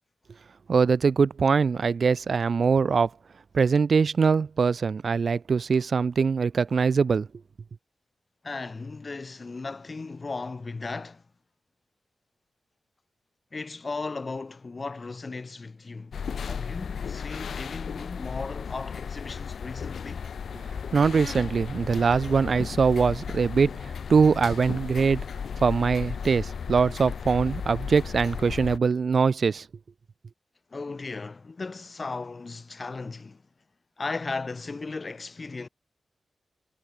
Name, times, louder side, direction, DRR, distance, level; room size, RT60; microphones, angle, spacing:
voice 1, 0.7-3.1 3.5-7.3 20.9-25.2 25.6-29.7, right 5 dB, 50° right, 2.5 m, -22 dB
voice 2, 8.4-11.2 13.5-16.1 16.5-20.3 30.7-33.4 34.0-35.7, left 3 dB, 30° left, 2.1 m, -36 dB
sound 1, 16.1-28.8, left 6 dB, 75° left, 1.0 m, -35 dB
wide cardioid pair, 170°, 0 cm